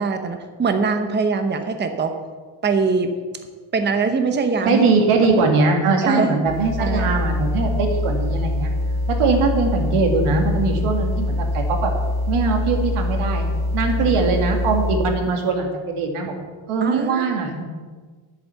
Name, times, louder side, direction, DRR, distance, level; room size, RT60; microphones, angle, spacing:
voice 1, 0.0-2.2 2.6-3.1 3.7-4.8 6.0-6.5 6.8-7.1 14.0-14.1 16.8-17.3, right 4 dB, 20° right, 7 dB, 0.8 m, -22 dB
voice 2, 4.7-8.7 9.1-11.9 12.3-13.5 13.7-16.3 16.7-17.6, right 4 dB, 90° right, 3 dB, 2.2 m, -21 dB
sound 1, 6.5-15.2, left 1 dB, 45° right, 1.5 m, -24 dB
11.0 x 8.2 x 7.0 m, 1.5 s
cardioid pair, 155°, 49 cm